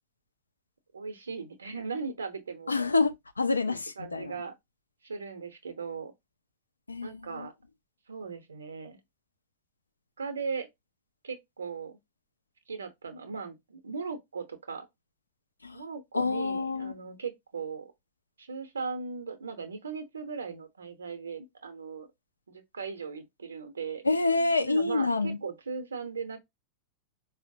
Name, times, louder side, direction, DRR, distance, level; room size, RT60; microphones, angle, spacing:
voice 1, 0.9-2.7 3.6-4.5 5.0-6.1 7.0-7.5 8.1-9.0 10.2-10.7 11.2-12.0 12.7-14.9 15.7-17.9 18.4-22.1 22.5-24.0 24.6-26.4, right 5 dB, 70° right, 0.7 m, -38 dB
voice 2, 2.7-4.4 6.9-7.5 15.6-15.8 16.1-16.9 24.0-25.4, left 3 dB, 80° left, 0.4 m, -27 dB
4.4 x 2.0 x 2.6 m
figure-of-eight pair, 90°, 0 cm